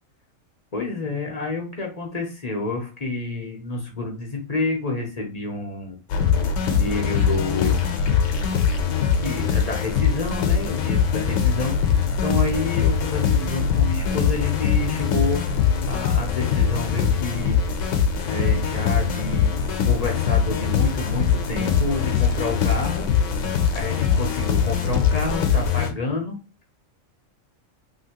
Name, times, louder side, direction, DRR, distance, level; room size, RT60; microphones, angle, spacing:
voice 1, 0.7-6.0 6.6-7.8 9.2-11.7 12.2-15.4 15.8-17.6 18.3-19.5 19.8-23.0 23.7-26.4, left 3 dB, 40° left, 1 dB, 0.6 m, -29 dB
sound 1, 6.1-25.9, left 7 dB, 70° left, 0.9 m, -22 dB
2.8 x 2.8 x 2.8 m, 0.31 s
omnidirectional pair, 1.4 m